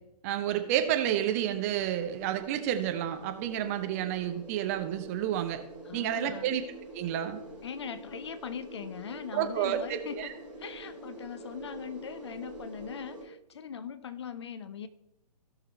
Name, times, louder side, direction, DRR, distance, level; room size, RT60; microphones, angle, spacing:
voice 1, 0.2-5.6 5.9-6.6 6.9-7.4 9.3-10.3, right 11 dB, 20° right, 7 dB, 0.7 m, -30 dB
sound 1, 0.5-13.2, right 2 dB, 5° right, 3.3 m, -46 dB
voice 2, 5.8-6.6 7.6-14.9, left 7 dB, 40° left, 13 dB, 0.6 m, -41 dB
16.0 x 5.9 x 3.3 m, 0.88 s
figure-of-eight pair, 130°, 21 cm